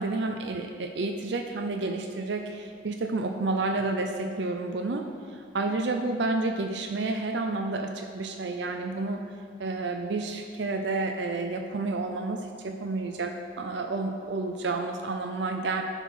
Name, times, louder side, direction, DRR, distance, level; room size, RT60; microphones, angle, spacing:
voice 1, 0.0-9.2 9.6-15.8, right 3 dB, 65° right, 4 dB, 0.5 m, -30 dB
11.0 x 4.5 x 5.6 m, 2.3 s
head